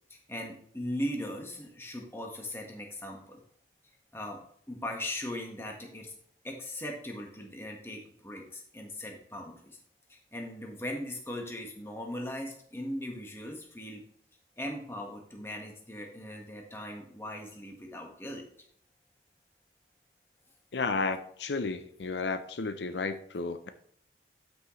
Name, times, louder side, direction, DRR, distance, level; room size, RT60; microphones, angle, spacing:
voice 1, 0.1-3.4 4.1-4.4 4.7-6.1 6.4-9.8 10.1-14.0 14.6-18.4, left 1 dB, 15° left, 1.5 m, -39 dB
voice 2, 20.7-23.7, left 4 dB, 85° left, 0.6 m, -32 dB
12.5 x 6.2 x 3.2 m
head